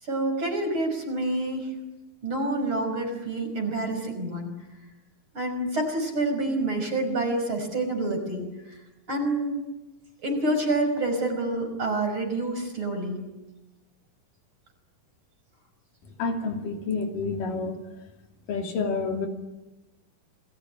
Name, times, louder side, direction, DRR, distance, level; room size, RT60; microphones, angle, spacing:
voice 1, 0.1-1.7 2.2-4.5 5.3-8.8 9.1-9.6 10.2-13.2, right 2 dB, 35° right, 4 dB, 6.2 m, -27 dB
voice 2, 16.2-17.8 18.5-19.3, left 4 dB, 80° left, 3 dB, 4.5 m, -29 dB
29.0 x 20.0 x 9.9 m, 1.0 s
omnidirectional pair, 3.8 m